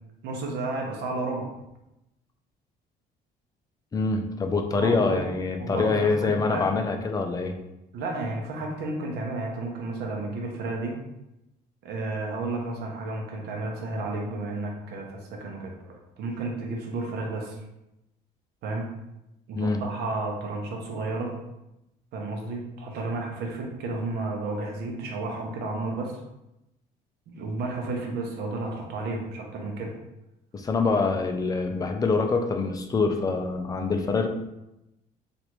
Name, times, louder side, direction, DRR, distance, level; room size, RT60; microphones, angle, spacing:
voice 1, 0.2-1.5 4.7-5.3 5.6-6.6 7.9-11.0 11.8-17.6 18.6-18.9 19.5-21.3 22.1-26.2 27.3-29.9, right 2 dB, 75° right, 0 dB, 0.8 m, -32 dB
voice 2, 3.9-7.6 19.6-19.8 30.5-34.3, left 4 dB, 20° left, 5 dB, 0.4 m, -25 dB
3.2 x 2.5 x 3.0 m, 0.91 s
cardioid pair, 110°, 17 cm